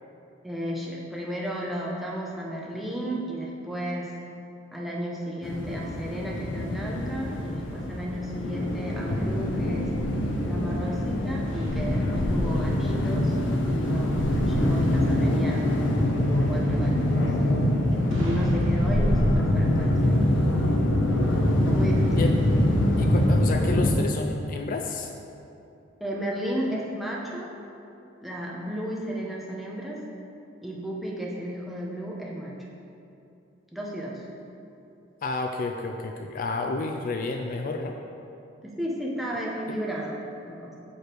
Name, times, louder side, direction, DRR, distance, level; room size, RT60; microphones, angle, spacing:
voice 1, 0.4-4.1 4.7-9.9 10.5-14.2 14.5-15.7 16.3-17.3 18.1-20.6 21.7-22.2 26.0-27.5 28.2-30.0 30.6-32.5 33.7-34.2 38.6-40.2 40.4-40.7, equal, ahead, -4 dB, 0.8 m, -33 dB
sound 1, 5.4-23.9, left 1 dB, 75° left, 0.7 m, -24 dB
sound 2, 11.4-15.1 18.1-21.8, equal, 85° right, 1.3 m, -36 dB
voice 2, 23.0-25.1 35.2-38.0 39.7-39.8, left 3 dB, 45° left, 3 dB, 0.3 m, -30 dB
6.5 x 5.0 x 4.5 m, 2.8 s
head